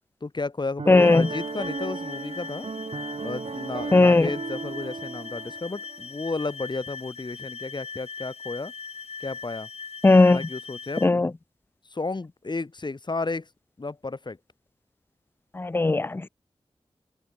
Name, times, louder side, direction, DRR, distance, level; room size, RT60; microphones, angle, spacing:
voice 1, 0.2-2.7 3.2-8.7 9.2-9.7 10.1-11.1 11.9-13.5 13.8-14.4, left 3 dB, 45° left, 3.7 m, -32 dB
Piano, 0.8-6.1, right 4 dB, 65° right, 6.3 m, -35 dB
voice 2, 0.9-1.3 3.9-4.3 10.0-10.4 11.0-11.3 15.6-16.3, left 3 dB, 20° left, 0.4 m, -17 dB
sound 1, 1.0-11.1, left 5 dB, 70° left, 5.8 m, -40 dB
cardioid pair, 55°, 11 cm